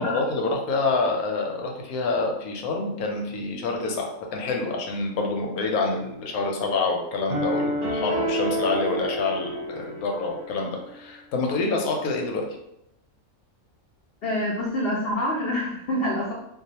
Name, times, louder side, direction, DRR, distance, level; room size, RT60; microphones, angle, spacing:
voice 1, 0.0-12.5, left 3 dB, 85° left, 1 dB, 1.1 m, -27 dB
sound 1, 7.3-10.5, equal, 50° right, 0.7 m, -28 dB
voice 2, 14.2-16.3, left 1 dB, 70° left, -4 dB, 0.5 m, -26 dB
2.3 x 2.3 x 2.8 m, 0.80 s
omnidirectional pair, 1.5 m